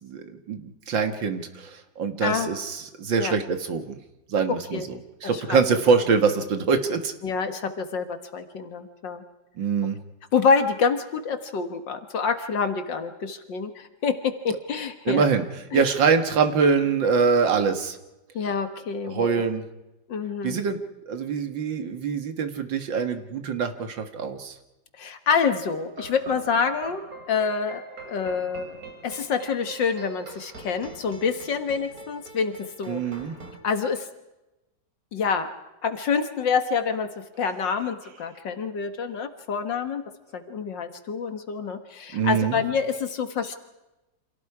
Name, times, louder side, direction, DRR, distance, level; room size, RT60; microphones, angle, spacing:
voice 1, 0.0-4.0 4.3-7.1 9.6-10.0 15.1-15.4 15.7-18.0 19.1-19.6 20.4-20.8 21.1-24.5 32.9-33.4 42.1-42.6, right 5 dB, 85° right, 7 dB, 2.4 m, -24 dB
voice 2, 4.5-4.9 5.2-5.6 7.2-9.2 10.3-15.2 15.7-15.8 18.3-19.4 20.1-20.6 25.0-28.8 29.0-33.0 33.6-34.1 35.1-35.5 35.8-40.0 40.3-43.5, left 5 dB, 75° left, 7 dB, 2.2 m, -27 dB
sound 1, 25.6-33.6, right 4 dB, 50° right, 3.3 m, -43 dB
29.5 x 27.0 x 4.9 m, 0.98 s
omnidirectional pair, 2.0 m